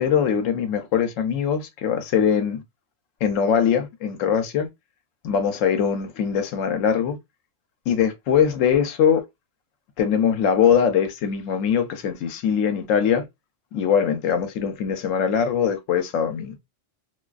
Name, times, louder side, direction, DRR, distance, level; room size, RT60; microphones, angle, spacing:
voice 1, 0.0-2.6 3.2-4.7 5.2-7.2 7.9-9.2 10.0-13.2 13.7-16.5, left 7 dB, 90° left, 0.9 m, -22 dB
2.5 x 2.3 x 2.3 m
omnidirectional pair, 1.3 m